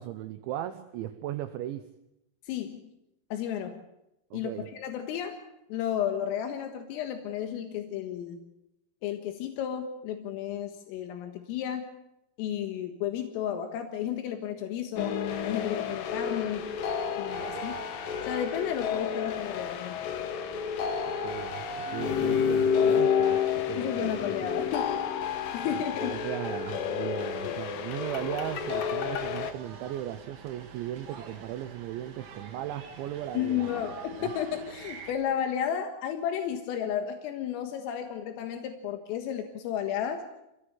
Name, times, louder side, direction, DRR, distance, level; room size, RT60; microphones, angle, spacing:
voice 1, 0.0-1.9 4.3-4.7 17.4-17.8 21.1-24.7 25.8-33.8 34.2-34.3, right 12 dB, 75° right, 9 dB, 3.1 m, -37 dB
voice 2, 2.5-2.8 3.3-3.8 4.3-5.4 5.7-8.5 9.0-11.9 12.4-15.2 15.4-16.7 17.2-17.7 18.3-20.1 23.7-26.1 27.4-27.6 33.3-40.3, left 9 dB, 85° left, 5 dB, 4.2 m, -33 dB
sound 1, 15.0-29.5, left 7 dB, 65° left, 2.3 m, -30 dB
sound 2, 28.4-35.1, right 5 dB, 50° right, 5.0 m, -47 dB
28.0 x 18.0 x 8.1 m, 0.86 s
omnidirectional pair, 5.9 m